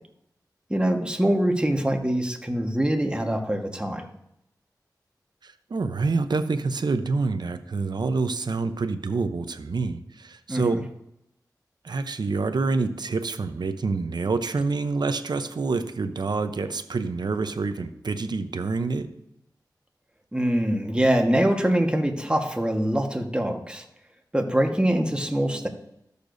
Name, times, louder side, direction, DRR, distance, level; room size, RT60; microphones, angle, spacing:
voice 1, 0.7-4.1 10.5-10.8 20.3-23.8 24.3-25.7, right 1 dB, 15° right, 3 dB, 1.4 m, -24 dB
voice 2, 5.4-10.8 11.8-19.1, right 4 dB, 70° right, 9 dB, 0.7 m, -27 dB
13.5 x 6.7 x 2.6 m, 0.81 s
cardioid pair, 45°, 7 cm